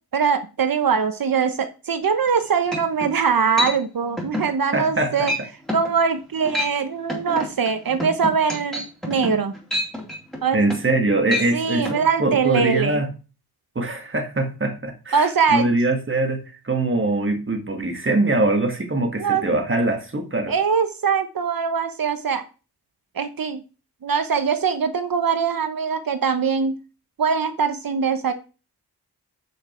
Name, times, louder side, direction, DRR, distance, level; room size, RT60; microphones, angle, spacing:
voice 1, 0.1-5.3 5.7-9.5 10.4-10.6 11.5-13.0 15.1-15.7 19.2-19.4 20.5-22.4 23.1-23.6 24.0-26.8 27.2-28.3, right 6 dB, 60° right, 1.0 m, -22 dB
sound 1, 2.3-2.4 2.7-3.1 3.6-3.8 4.2-4.5 4.8-5.0 5.3-5.4 5.7-5.9 6.4-6.8 7.1-11.0 11.3-11.5 11.9-12.0, left 1 dB, ahead, 3.6 m, -28 dB
voice 2, 4.7-5.3 10.5-13.1 13.8-20.5, right 2 dB, 30° right, 1.8 m, -23 dB
8.1 x 6.4 x 4.4 m
wide cardioid pair, 100°, 40 cm